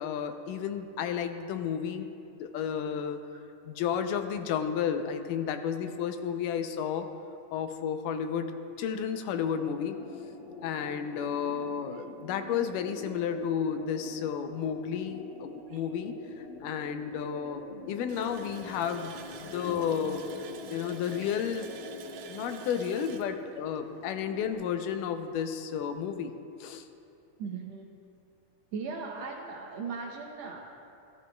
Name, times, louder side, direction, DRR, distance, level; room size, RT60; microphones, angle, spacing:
voice 1, 0.0-3.2 3.7-7.1 7.5-8.5 8.8-10.0 10.6-19.1 19.4-20.2 20.7-21.7 22.3-26.9, left 8 dB, 90° left, 8 dB, 2.2 m, -32 dB
sound 1, 9.3-24.5, left 2 dB, 50° left, 2.3 m, -45 dB
Water tap faucet, 18.1-24.6 24.9-25.0 25.5-25.6, right 5 dB, 90° right, 2.3 m, -47 dB
voice 2, 27.4-27.9 28.7-30.6, right 5 dB, 70° right, 0 dB, 1.7 m, -38 dB
15.0 x 13.5 x 2.3 m, 2.7 s
omnidirectional pair, 3.6 m